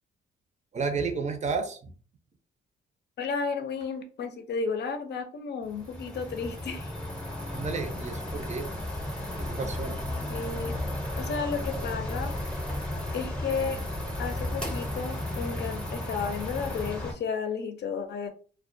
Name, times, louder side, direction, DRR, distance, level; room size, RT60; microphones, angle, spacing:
voice 1, 0.7-1.8 7.5-8.7 9.4-10.0, right 4 dB, 35° right, 7 dB, 0.5 m, -32 dB
voice 2, 3.2-6.9 10.3-10.8 11.2-12.3 13.1-13.8 14.2-18.3, left 5 dB, 55° left, 8 dB, 0.5 m, -33 dB
sound 1, 5.7-17.1, left 1 dB, 5° left, 0.7 m, -34 dB
2.2 x 2.1 x 2.5 m, 0.42 s
cardioid pair, 75°, 21 cm